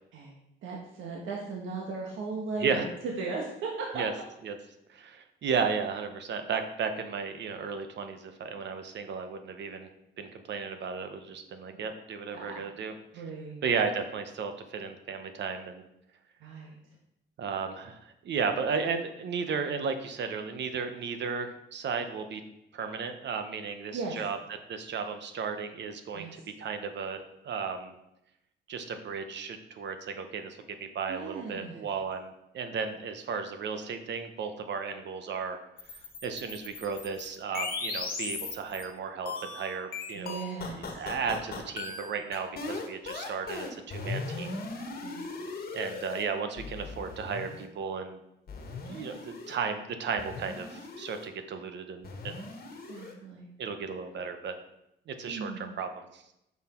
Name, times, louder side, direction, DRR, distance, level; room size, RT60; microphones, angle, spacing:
voice 1, 0.6-4.0 12.3-12.6 13.1-13.7 16.4-16.8 23.9-24.2 26.1-26.4 31.1-31.9 40.1-41.1 45.0-45.2 52.9-53.5 55.2-55.7, right 3 dB, 80° right, -2 dB, 1.4 m, -37 dB
voice 2, 4.9-9.9 10.2-12.9 13.6-15.8 17.4-18.0 18.2-22.4 22.7-24.4 24.7-27.9 28.7-35.6 36.2-40.4 40.9-44.6 45.7-48.2 48.9-52.4 53.6-54.5 55.1-56.2, right 5 dB, 65° right, 7 dB, 1.0 m, -34 dB
sound 1, 35.8-38.9 39.3-46.2 46.6-47.7 48.5-49.6 50.2-51.3 52.0-53.1, left 4 dB, 50° left, 1.4 m, -38 dB
6.1 x 5.7 x 4.4 m, 0.83 s
cardioid pair, 90°, 20 cm